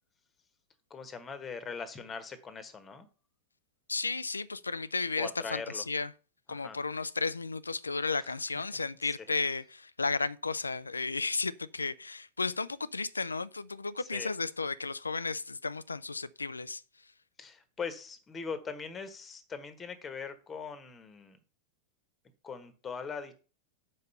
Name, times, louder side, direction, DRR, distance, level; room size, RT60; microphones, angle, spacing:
voice 1, 0.9-3.1 5.2-5.8 6.5-6.8 8.2-8.6 9.0-9.1 14.0-14.3 17.4-21.4 22.4-23.3, left 5 dB, 20° left, 1.3 m, -41 dB
voice 2, 3.9-6.1 6.5-16.8, left 4 dB, 80° left, 0.4 m, -33 dB
6.5 x 5.4 x 6.7 m
figure-of-eight pair, 90°, 0 cm